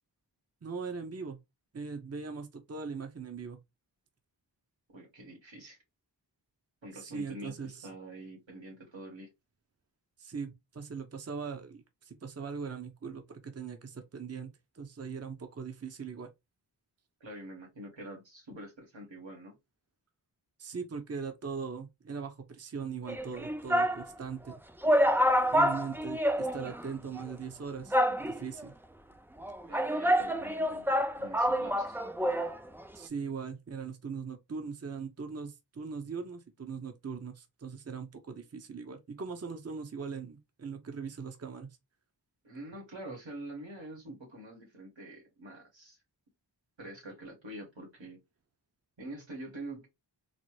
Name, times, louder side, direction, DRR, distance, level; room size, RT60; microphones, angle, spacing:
voice 1, 0.6-1.4 1.7-3.6 6.9-7.9 10.2-16.3 20.6-24.6 25.5-28.7 32.9-41.7, right 5 dB, 35° right, 0.7 m, -40 dB
voice 2, 4.9-5.8 6.8-9.3 17.2-19.6 29.7-30.9 31.2-32.0 42.4-46.0 46.8-48.2 49.0-49.9, right 1 dB, 90° right, 1.9 m, -45 dB
sound 1, 23.1-24.0 24.5-24.6 24.8-26.9 27.2-27.3 27.9-28.6 29.4-32.6 32.8-32.9, equal, 5° right, 0.3 m, -27 dB
4.0 x 2.0 x 3.1 m
wide cardioid pair, 45°, 44 cm